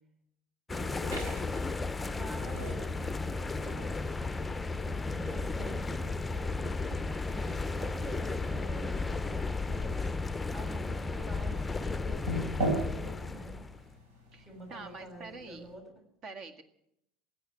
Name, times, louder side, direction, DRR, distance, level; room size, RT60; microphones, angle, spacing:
sound 1, 0.7-13.8, left 3 dB, 15° left, 0.6 m, -34 dB
voice 1, 0.7-1.5 2.0-3.9 4.3-7.2 7.8-10.2 10.5-13.6 14.4-15.8, right 1 dB, 30° right, 4 dB, 6.9 m, -48 dB
sound 2, 1.0-15.8, right 1 dB, 75° right, 4.6 m, -42 dB
voice 2, 14.3-15.6 16.2-16.6, right 4 dB, 50° right, 7 dB, 1.8 m, -46 dB
16.0 x 9.1 x 9.9 m, 0.79 s
hypercardioid pair, 75°, 0 cm